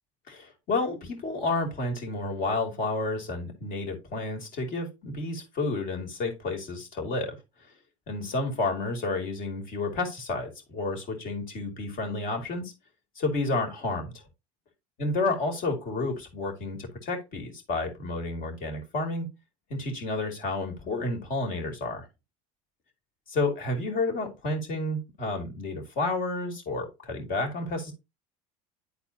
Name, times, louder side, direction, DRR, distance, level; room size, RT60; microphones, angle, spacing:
voice 1, 0.3-7.4 8.1-12.7 13.2-14.1 15.0-19.3 19.7-22.1 23.3-27.9, left 2 dB, 55° left, 2.9 m, -30 dB
11.0 x 4.2 x 2.9 m
supercardioid pair, 85°, 17 cm